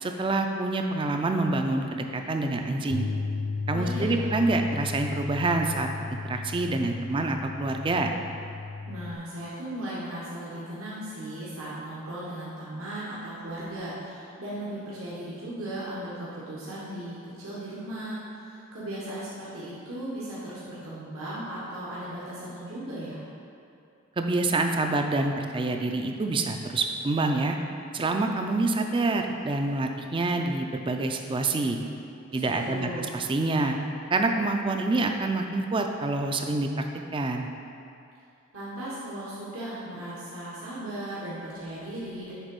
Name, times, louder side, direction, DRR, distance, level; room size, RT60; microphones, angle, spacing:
voice 1, 0.0-3.1 3.7-8.1 24.2-27.6 27.9-31.8 32.3-33.8 34.1-36.8 37.1-37.5, right 2 dB, 25° right, 4 dB, 0.4 m, -27 dB
Bass guitar, 2.9-9.2, left 4 dB, 70° left, 0.4 m, -34 dB
voice 2, 3.7-4.3 8.8-23.2 32.3-33.1 38.5-42.3, right 1 dB, 80° right, -9 dB, 1.3 m, -37 dB
7.3 x 3.9 x 5.3 m, 2.6 s
head